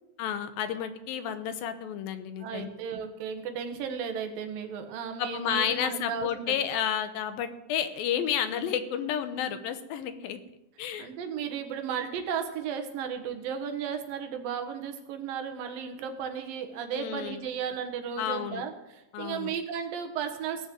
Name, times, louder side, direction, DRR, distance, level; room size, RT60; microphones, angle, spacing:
voice 1, 0.2-2.7 5.2-10.4 10.8-11.1 16.9-17.5 18.2-18.6 19.1-19.5, left 9 dB, 85° left, 9 dB, 2.8 m, -31 dB
voice 2, 2.4-6.6 8.5-8.7 11.0-20.7, right 7 dB, 80° right, 6 dB, 3.1 m, -35 dB
17.5 x 6.6 x 7.7 m, 0.93 s
omnidirectional pair, 4.0 m